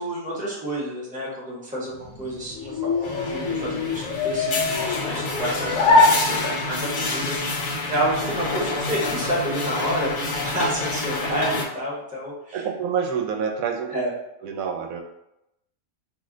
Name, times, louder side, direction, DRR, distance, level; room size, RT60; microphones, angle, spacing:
voice 1, 0.0-2.9 3.3-12.7 13.9-14.1, right 1 dB, 10° right, -6 dB, 0.7 m, -29 dB
sound 1, 1.9-6.9, left 3 dB, 90° left, 1.0 m, -23 dB
sound 2, 3.0-11.6, left 2 dB, 70° left, 0.5 m, -28 dB
voice 2, 12.5-14.0 14.4-15.0, right 6 dB, 90° right, 2 dB, 1.0 m, -27 dB
2.7 x 2.1 x 3.7 m, 0.85 s
omnidirectional pair, 1.4 m